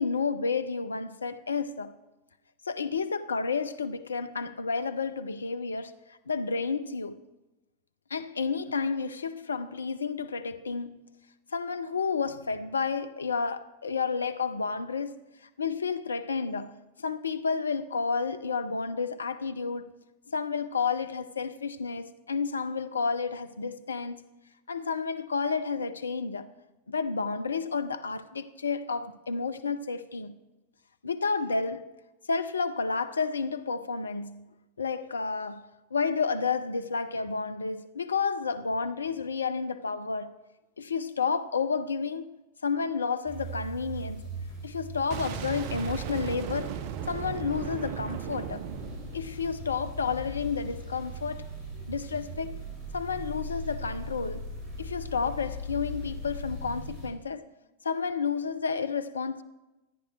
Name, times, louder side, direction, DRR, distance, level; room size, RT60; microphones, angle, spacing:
voice 1, 0.0-1.9 2.7-7.2 8.1-11.0 11.5-15.2 15.6-19.9 20.3-24.3 24.7-26.5 26.9-30.4 31.0-31.9 32.3-34.4 34.8-40.3 40.8-44.2 44.6-46.7 47.1-48.6 49.1-51.4 51.9-52.6 52.9-54.4 54.8-57.5 57.8-59.4, left 5 dB, 75° left, 0.5 m, -31 dB
sound 1, 43.3-57.1, equal, 25° right, 4.1 m, -40 dB
Boom, 45.1-50.0, right 9 dB, 45° right, 0.5 m, -36 dB
14.0 x 9.7 x 3.2 m
figure-of-eight pair, 90°, 0 cm